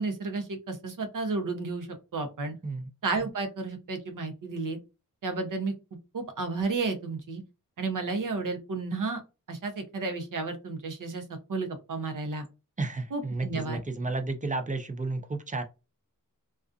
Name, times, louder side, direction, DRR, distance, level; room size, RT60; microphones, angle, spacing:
voice 1, 0.0-1.9 2.1-2.5 3.0-4.8 5.2-5.7 6.1-7.4 7.8-9.2 9.5-11.2 11.5-12.4 13.1-13.8, right 3 dB, 65° right, 0.7 m, -32 dB
voice 2, 12.8-15.6, right 3 dB, 25° right, 0.4 m, -32 dB
2.5 x 2.3 x 2.3 m
wide cardioid pair, 115°, 35 cm